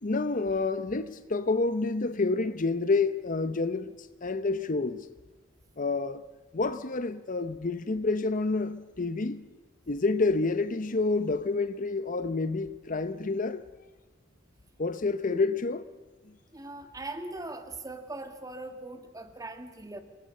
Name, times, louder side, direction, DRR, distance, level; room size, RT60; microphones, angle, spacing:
voice 1, 0.0-3.9 4.2-5.1 5.8-6.2 6.5-9.4 9.9-13.6 14.8-15.8, left 3 dB, 45° left, 0.7 m, -28 dB
voice 2, 16.5-20.0, right 2 dB, 20° right, 1.9 m, -40 dB
26.5 x 22.0 x 6.6 m
head